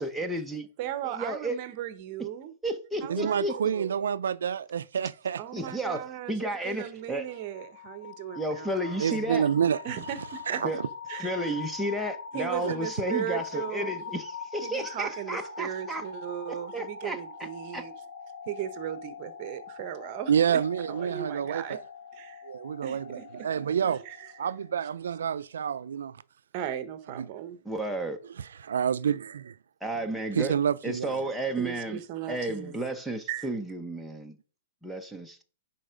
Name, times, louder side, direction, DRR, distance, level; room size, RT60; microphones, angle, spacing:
voice 1, 0.0-0.7 1.0-1.6 2.6-3.5 5.5-7.2 8.3-9.5 10.6-10.8 11.2-16.0 16.5-17.5 17.7-17.8 27.6-28.2 29.8-30.6 30.8-32.0 32.3-34.4 34.8-35.4, right 1 dB, ahead, 0.8 m, -32 dB
voice 2, 0.8-2.5 3.0-3.9 5.4-9.1 9.8-10.6 11.1-11.4 12.3-14.1 14.6-17.9 18.5-20.6 20.9-21.8 22.2-22.4 22.8-23.5 24.0-24.3 26.5-27.6 31.6-32.8 33.3-33.5, right 11 dB, 35° right, 1.0 m, -37 dB
voice 3, 3.1-5.4 9.0-9.8 10.5-10.9 12.6-12.7 20.3-21.8 22.4-24.0 24.4-26.2 27.2-27.3 28.4-29.5 30.3-31.1, right 8 dB, 85° right, 0.3 m, -28 dB
sound 1, 7.1-25.0, left 6 dB, 55° left, 2.9 m, -42 dB
10.0 x 4.4 x 5.1 m
hypercardioid pair, 160°, 0 cm